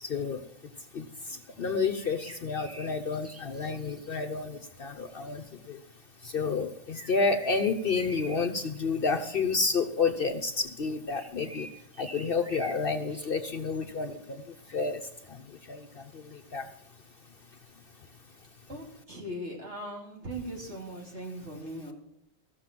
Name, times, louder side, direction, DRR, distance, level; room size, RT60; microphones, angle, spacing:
voice 1, 0.0-0.4 0.9-1.0 1.6-5.8 6.2-11.7 12.0-14.4 14.7-15.0 15.7-15.8 16.5-16.6, left 4 dB, 50° left, 7 dB, 0.9 m, -30 dB
sound 1, 2.0-4.1 6.9-8.8 9.1-9.4 11.1-12.8 13.1-13.8, right 1 dB, 15° right, 0.8 m, -47 dB
voice 2, 18.7-21.9, right 1 dB, 55° right, -1 dB, 3.4 m, -39 dB
14.5 x 6.7 x 7.5 m, 0.75 s
omnidirectional pair, 1.4 m